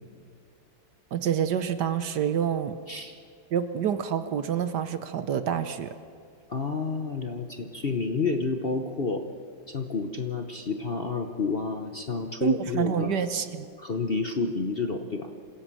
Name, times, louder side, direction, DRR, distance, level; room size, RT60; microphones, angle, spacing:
voice 1, 1.1-2.8 3.5-5.9 12.4-13.7, right 8 dB, 65° right, 11 dB, 1.4 m, -27 dB
voice 2, 2.9-3.2 6.5-9.2 9.7-13.1 13.8-15.3, left 4 dB, 40° left, 5 dB, 0.9 m, -30 dB
26.5 x 16.5 x 7.5 m, 2.3 s
omnidirectional pair, 2.1 m